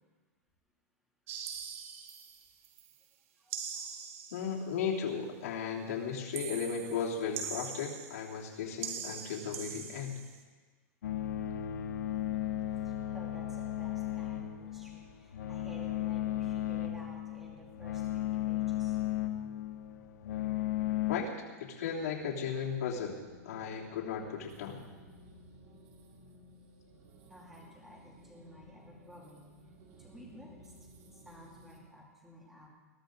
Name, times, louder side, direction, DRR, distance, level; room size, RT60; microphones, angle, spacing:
sound 1, 1.3-2.9 3.5-4.7 6.3-8.5 8.8-10.4, right 7 dB, 55° right, 1.5 m, -42 dB
voice 1, 1.7-2.1 3.4-3.9 6.5-6.6 12.3-12.4 12.8-19.0 27.3-29.5 30.0-30.7 31.1-32.7, equal, 5° right, -4 dB, 2.6 m, -54 dB
voice 2, 4.3-10.2 21.1-21.3 21.6-23.2 23.4-24.8, left 6 dB, 65° left, -4 dB, 3.2 m, -35 dB
sound 2, 11.0-21.2, left 12 dB, 80° left, 1.1 m, -35 dB
sound 3, 21.9-31.8, equal, 35° right, 2.1 m, -57 dB
21.5 x 12.5 x 3.9 m, 1.4 s
supercardioid pair, 170°, 9 cm